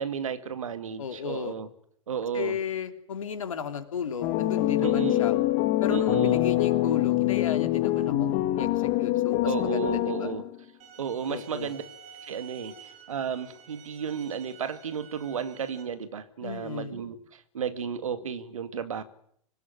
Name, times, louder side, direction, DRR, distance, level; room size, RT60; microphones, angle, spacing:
voice 1, 0.0-1.7 2.1-2.6 4.8-5.3 5.9-6.5 9.4-10.4 11.0-11.8 12.2-19.0, right 7 dB, 75° right, 11 dB, 2.3 m, -33 dB
voice 2, 1.0-1.5 2.3-5.3 5.8-10.3 11.3-11.7 16.4-16.9, left 7 dB, 75° left, 8 dB, 3.0 m, -34 dB
sound 1, 4.2-10.6, left 15 dB, 45° left, 2.2 m, -25 dB
sound 2, 10.8-15.8, right 7 dB, 40° right, 6.4 m, -50 dB
25.0 x 17.0 x 9.7 m, 0.68 s
figure-of-eight pair, 95°, 17 cm